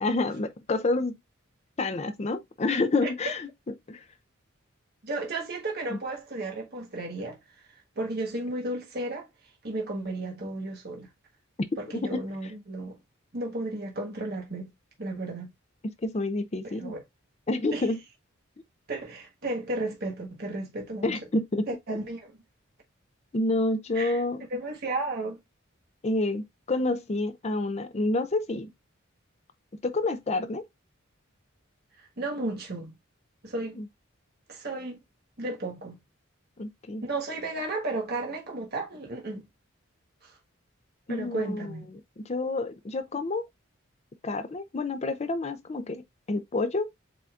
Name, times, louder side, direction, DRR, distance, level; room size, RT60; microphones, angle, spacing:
voice 1, 0.0-1.1 1.8-3.5 3.9-4.0 5.9-6.0 11.9-12.2 16.0-16.9 17.5-18.0 21.0-21.7 23.3-24.4 26.0-28.7 29.8-30.6 33.8-33.9 36.6-37.0 41.1-41.7 42.2-43.5 44.2-46.0 46.3-46.9, left 2 dB, 30° left, 0.5 m, -28 dB
voice 2, 5.0-7.4 7.9-9.3 9.6-11.1 11.8-13.0 13.3-14.7 15.0-15.5 16.6-17.0 17.7-17.9 18.9-21.1 21.7-22.4 23.9-24.2 24.5-25.4 32.0-32.9 33.4-33.8 34.5-35.0 35.4-36.0 37.0-39.5 40.2-40.4 41.1-41.8, right 2 dB, 50° right, 1.4 m, -33 dB
7.7 x 2.7 x 2.4 m
head